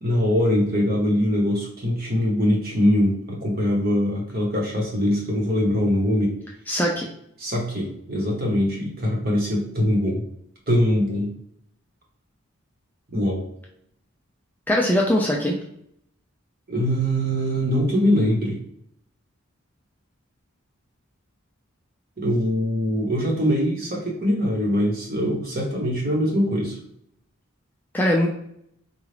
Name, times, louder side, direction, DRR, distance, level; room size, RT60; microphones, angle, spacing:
voice 1, 0.0-6.4 7.4-10.2 10.7-11.3 13.1-13.5 16.7-18.6 22.2-26.8, equal, 45° right, -2 dB, 1.0 m, -22 dB
voice 2, 6.7-7.1 14.7-15.5 27.9-28.3, left 1 dB, 10° left, -2 dB, 0.4 m, -21 dB
3.9 x 2.4 x 3.3 m, 0.73 s
head